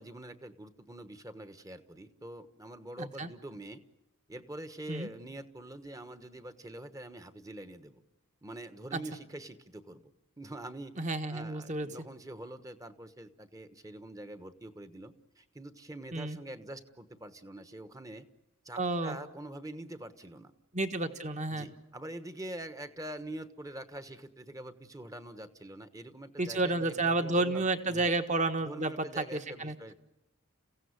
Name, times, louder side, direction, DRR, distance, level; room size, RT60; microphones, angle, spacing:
voice 1, 0.0-3.8 4.3-8.0 8.4-10.1 10.4-18.3 18.6-20.5 21.5-28.1 28.6-30.0, right 1 dB, 15° right, 11 dB, 1.2 m, -45 dB
voice 2, 3.0-3.3 4.9-5.1 8.9-9.0 11.0-11.9 16.1-16.4 18.8-19.2 20.7-21.7 26.4-29.7, right 2 dB, 35° right, 8 dB, 1.5 m, -31 dB
30.0 x 16.5 x 9.7 m, 0.93 s
head